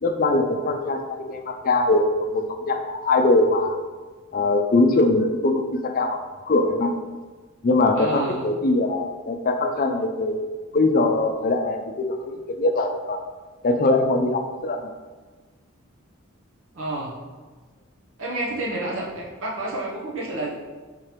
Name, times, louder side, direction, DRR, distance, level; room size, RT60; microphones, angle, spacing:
voice 1, 0.0-3.8 4.3-6.2 6.5-6.9 7.6-10.4 10.7-13.2 13.6-14.9, left 2 dB, 45° left, 5 dB, 0.4 m, -22 dB
voice 2, 8.0-8.5 16.7-17.2 18.2-20.5, right 2 dB, 75° right, -4 dB, 0.8 m, -29 dB
4.8 x 3.7 x 3.0 m, 1.3 s
head